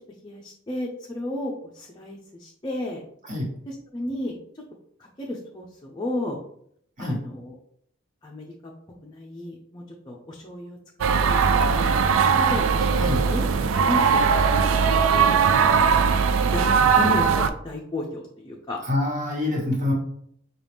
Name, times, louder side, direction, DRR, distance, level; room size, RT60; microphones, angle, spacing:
voice 1, 0.2-3.0 3.7-4.4 5.0-6.4 7.0-7.5 8.2-8.7 9.0-10.8 11.2-12.0 12.3-13.5 13.9-14.7 15.1-15.9 16.5-18.8, left 1 dB, 20° left, -2 dB, 0.6 m, -33 dB
sound 1, 11.0-17.5, right 6 dB, 80° right, 0.4 m, -20 dB
voice 2, 18.8-19.9, left 2 dB, 40° right, -3 dB, 1.5 m, -26 dB
5.5 x 2.4 x 3.4 m, 0.67 s
head